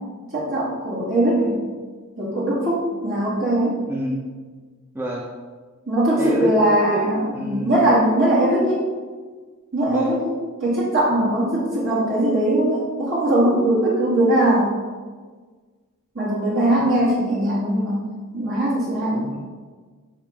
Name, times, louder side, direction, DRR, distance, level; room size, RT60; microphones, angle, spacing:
voice 1, 0.3-1.6 2.2-3.8 5.9-8.8 9.7-10.3 10.6-14.8 16.1-18.0 18.3-19.3, right 1 dB, 55° right, -7 dB, 2.5 m, -20 dB
voice 2, 3.9-4.2 4.9-5.3 6.2-7.8 9.9-10.2 19.1-19.4, equal, 10° right, -1 dB, 0.7 m, -29 dB
10.0 x 5.9 x 3.7 m, 1.4 s
head